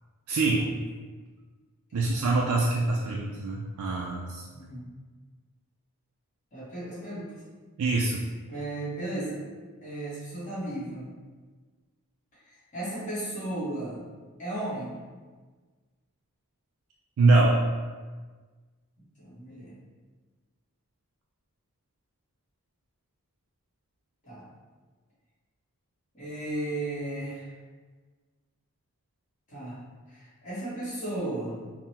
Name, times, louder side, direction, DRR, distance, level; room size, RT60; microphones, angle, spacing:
voice 1, 0.3-0.7 1.9-4.4 7.8-8.2 17.2-17.6, right 2 dB, 70° right, -2 dB, 0.3 m, -24 dB
voice 2, 1.9-2.2 4.5-4.9 6.5-7.4 8.5-9.4 9.8-11.1 12.5-14.0 14.4-15.0 19.0-19.8 24.2-24.5 26.1-27.5 29.5-29.8 30.1-31.6, right 1 dB, 35° left, -11 dB, 1.2 m, -35 dB
3.6 x 2.1 x 2.8 m, 1.4 s
head